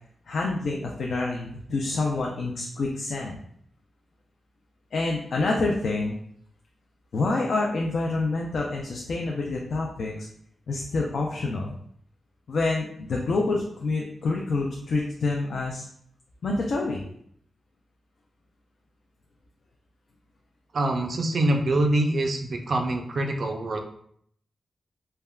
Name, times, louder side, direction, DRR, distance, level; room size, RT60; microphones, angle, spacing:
voice 1, 0.3-3.4 4.9-6.2 7.1-10.1 10.7-11.8 12.5-15.8 16.4-17.0, left 3 dB, 60° left, -1 dB, 0.3 m, -27 dB
voice 2, 20.7-23.8, right 1 dB, 45° right, 3 dB, 0.3 m, -25 dB
3.4 x 2.1 x 2.2 m, 0.67 s
wide cardioid pair, 180°, 0 cm